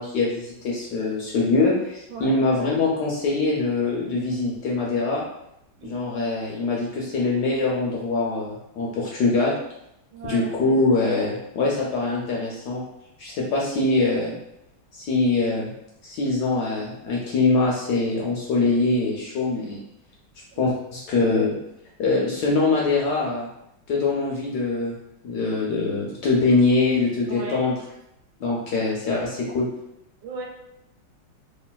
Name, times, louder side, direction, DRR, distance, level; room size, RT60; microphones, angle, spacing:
voice 1, 0.0-5.2 5.8-9.5 10.2-12.8 13.2-14.3 15.0-15.7 16.0-19.8 20.6-21.5 22.0-23.5 23.9-25.0 25.2-27.7 28.4-29.7, left 3 dB, 70° left, -3 dB, 1.0 m, -23 dB
voice 2, 10.1-10.5 20.5-20.8 27.3-27.7 30.2-30.5, right 4 dB, 80° right, 0 dB, 1.3 m, -36 dB
3.0 x 2.5 x 2.2 m, 0.81 s
omnidirectional pair, 2.1 m